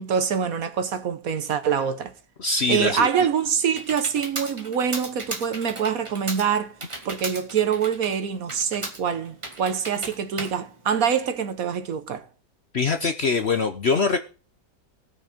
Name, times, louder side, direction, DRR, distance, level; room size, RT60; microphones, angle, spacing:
voice 1, 0.0-2.1 2.7-6.7 7.0-12.3, right 7 dB, 60° right, 1.2 m, -25 dB
voice 2, 2.4-3.1 12.7-14.2, left 4 dB, 50° left, 0.8 m, -23 dB
Computer keyboard, 2.9-11.5, right 2 dB, 20° right, 1.4 m, -37 dB
17.0 x 6.4 x 5.1 m
omnidirectional pair, 1.8 m